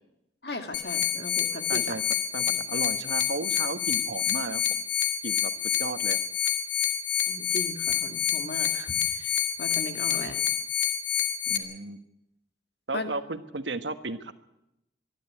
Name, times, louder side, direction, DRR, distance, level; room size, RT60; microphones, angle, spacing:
voice 1, 0.4-1.9 7.3-9.3 9.6-10.4 12.9-13.1, left 2 dB, 60° left, 6 dB, 2.2 m, -37 dB
sound 1, 0.7-11.6, left 9 dB, 85° left, 1.7 m, -28 dB
voice 2, 1.7-4.8 5.2-6.2 11.5-12.0 12.9-14.3, right 3 dB, 90° right, 10 dB, 1.3 m, -35 dB
24.5 x 11.5 x 9.8 m, 0.87 s
head